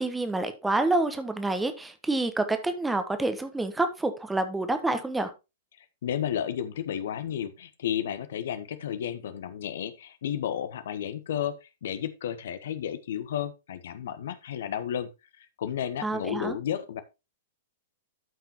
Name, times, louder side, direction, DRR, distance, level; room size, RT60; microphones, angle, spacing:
voice 1, 0.0-5.3 16.0-16.6, right 2 dB, 5° right, 1.2 m, -28 dB
voice 2, 6.0-15.1 15.4-17.0, left 9 dB, 60° left, 1.0 m, -32 dB
12.5 x 5.8 x 3.0 m
figure-of-eight pair, 105°, 0 cm